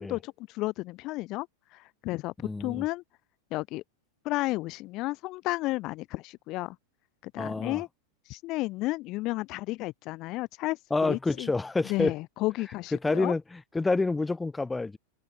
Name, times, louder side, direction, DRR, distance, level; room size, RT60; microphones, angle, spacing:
voice 1, 0.0-3.0 3.5-3.8 4.2-6.8 7.2-7.9 8.2-11.5 11.9-13.3, left 20 dB, 40° left, 6.3 m, -32 dB
voice 2, 2.4-2.8 7.4-7.8 10.9-12.1 13.0-15.0, left 3 dB, 10° left, 3.9 m, -28 dB
figure-of-eight pair, 90°, 0 cm